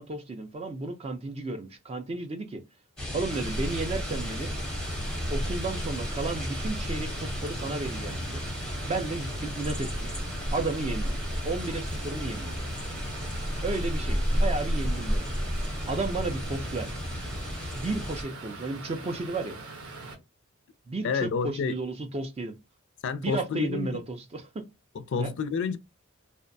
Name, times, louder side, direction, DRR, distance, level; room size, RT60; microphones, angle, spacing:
voice 1, 0.0-2.6 3.1-4.5 5.3-8.4 8.9-10.1 10.5-11.1 11.4-12.6 13.6-15.3 15.9-16.9 17.7-19.6 20.9-22.6 23.2-24.6 25.2-25.3, right 3 dB, 30° right, 0.3 m, -33 dB
sound 1, 3.0-18.2, equal, 5° left, 0.6 m, -32 dB
sound 2, 3.3-20.1, right 3 dB, 85° right, 0.8 m, -43 dB
sound 3, 9.8-17.6, equal, 50° right, 0.7 m, -43 dB
voice 2, 21.0-21.7 23.0-23.9 25.0-25.8, left 5 dB, 60° left, 0.4 m, -29 dB
2.5 x 2.0 x 2.5 m
head